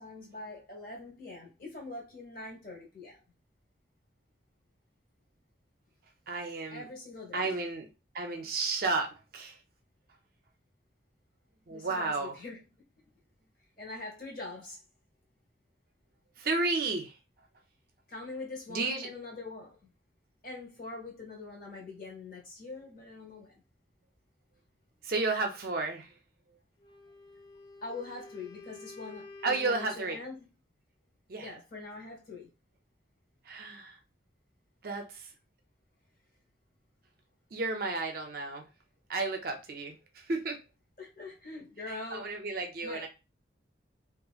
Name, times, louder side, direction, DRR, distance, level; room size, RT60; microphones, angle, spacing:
voice 1, 0.0-3.2 6.7-7.6 11.7-12.6 13.8-14.8 18.1-19.9 20.4-23.6 27.8-30.5 31.4-32.5 41.0-42.3 42.8-43.1, left 3 dB, 45° left, 1.1 m, -43 dB
voice 2, 6.3-6.9 7.3-7.9 8.1-9.6 11.7-12.4 16.4-17.2 18.7-19.1 25.0-26.2 29.4-30.2 31.3-31.5 33.4-34.0 34.8-35.3 37.5-38.7 39.1-40.6 41.9-43.1, right 3 dB, 50° right, 0.5 m, -32 dB
Wind instrument woodwind instrument, 26.8-30.3, left 3 dB, 25° left, 0.3 m, -50 dB
2.7 x 2.4 x 2.3 m
head